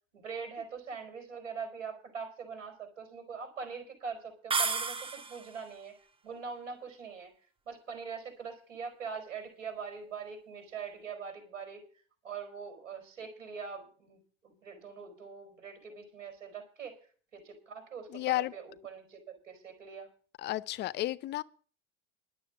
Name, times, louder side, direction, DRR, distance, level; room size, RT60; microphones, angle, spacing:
voice 1, 0.1-6.0 6.2-7.3 7.7-11.8 12.2-16.9 17.3-20.1, right 6 dB, 75° right, 4.4 m, -43 dB
sound 1, 4.5-5.6, right 5 dB, 15° right, 0.9 m, -32 dB
voice 2, 18.1-18.5 20.4-21.4, left 16 dB, 30° left, 0.5 m, -32 dB
11.5 x 7.4 x 9.3 m
figure-of-eight pair, 75°, 37 cm